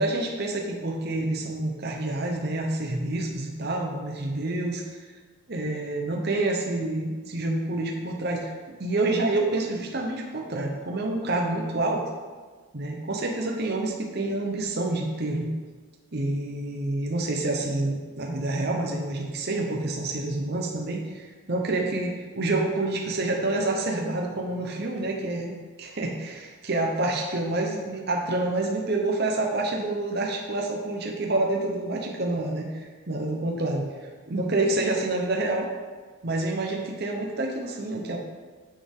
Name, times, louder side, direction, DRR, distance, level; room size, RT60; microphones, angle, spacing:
voice 1, 0.0-5.0 5.5-8.5 8.8-12.0 12.7-15.5 16.1-35.7 36.2-38.2, right 2 dB, 45° right, 0 dB, 0.9 m, -28 dB
9.3 x 6.5 x 3.6 m, 1.4 s
head